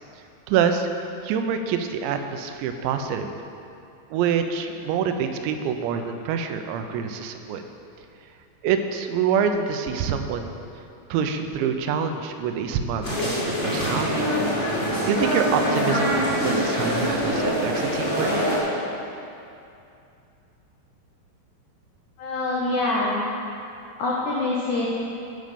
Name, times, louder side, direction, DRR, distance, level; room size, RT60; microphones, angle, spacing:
voice 1, 0.5-0.9 1.2-3.3 4.1-7.6 8.6-10.5 11.1-14.3 14.7-18.3, right 7 dB, 85° right, 7 dB, 3.0 m, -26 dB
sound 1, 13.0-18.6, equal, 40° left, 0.7 m, -24 dB
voice 2, 22.2-23.2 24.0-24.9, left 2 dB, 90° left, -4 dB, 1.7 m, -25 dB
11.5 x 5.2 x 6.8 m, 2.6 s
omnidirectional pair, 5.1 m